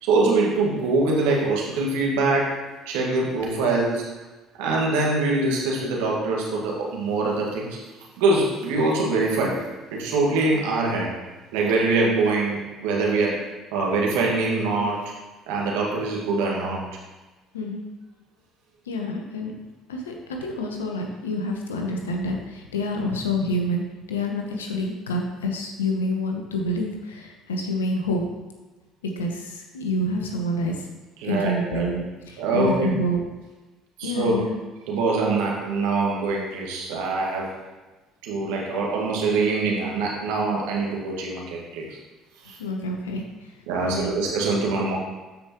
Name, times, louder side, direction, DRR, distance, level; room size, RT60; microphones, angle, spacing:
voice 1, 0.0-2.5 2.9-4.0 4.6-7.8 8.2-9.6 9.9-11.1 11.5-13.4 13.7-15.1 15.5-16.8 31.2-31.9 32.4-32.9 34.0-34.4 34.9-37.5 38.2-41.9 42.5-42.6 43.7-45.0, right 3 dB, 70° right, -2 dB, 1.8 m, -23 dB
voice 2, 17.5-17.9 18.9-19.5 19.9-28.2 29.0-30.9 31.2-33.2 34.0-34.6 42.6-43.5 43.8-44.2, left 1 dB, 85° left, 2 dB, 1.1 m, -28 dB
13.0 x 5.2 x 3.1 m, 1.2 s
hypercardioid pair, 60°, 0 cm